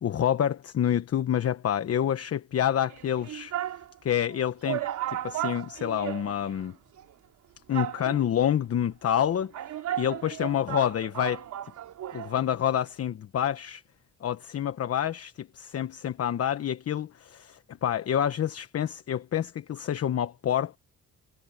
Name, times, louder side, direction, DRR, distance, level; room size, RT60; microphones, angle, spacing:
voice 1, 0.0-6.8 7.7-11.4 12.1-13.8 14.2-20.8, left 10 dB, 55° left, 1.1 m, -28 dB
sound 1, 2.9-3.9 4.3-4.4 4.6-6.7 7.0-7.1 7.7-8.4 9.2-12.4 12.6-12.7, right 12 dB, 75° right, 3.3 m, -35 dB
cardioid pair, 90°, 30 cm